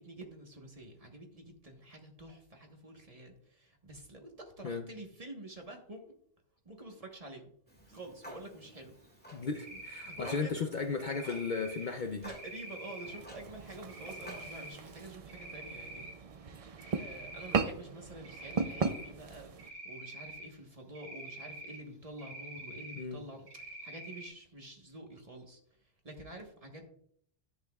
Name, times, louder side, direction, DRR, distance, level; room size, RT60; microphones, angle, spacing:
voice 1, 0.0-6.2 6.6-7.5 7.9-8.9 9.7-10.6 12.2-16.0 17.0-26.9, right 1 dB, 35° right, 2 dB, 1.2 m, -48 dB
Clock, 7.7-15.1, equal, 10° left, 1.7 m, -53 dB
voice 2, 9.3-12.2 23.0-23.2, left 4 dB, 50° left, 5 dB, 0.6 m, -35 dB
Cricket, 9.5-10.4 11.0-11.9 12.3-13.2 13.9-14.7 15.1-16.1 16.5-17.6 18.2-19.1 19.6-20.5 21.0-21.8 22.2-23.0 23.5-24.3, right 1 dB, 75° right, 1.8 m, -46 dB
sound 1, 13.0-19.7, right 5 dB, 50° right, 0.4 m, -38 dB
11.0 x 8.2 x 2.3 m, 0.65 s
omnidirectional pair, 1.2 m